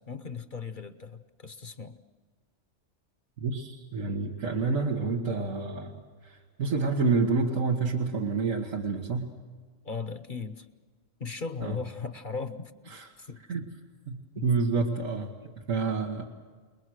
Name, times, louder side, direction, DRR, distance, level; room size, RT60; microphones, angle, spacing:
voice 1, 0.1-2.0 9.8-10.7 11.2-13.6 14.3-14.5 15.4-15.5, left 5 dB, 45° left, 10 dB, 1.0 m, -38 dB
voice 2, 3.4-6.0 6.2-9.3 11.6-11.8 12.9-13.1 13.5-13.6 14.1-15.3 15.7-16.2, right 4 dB, 90° right, 1 dB, 2.0 m, -28 dB
29.0 x 21.0 x 6.4 m, 1.5 s
omnidirectional pair, 1.3 m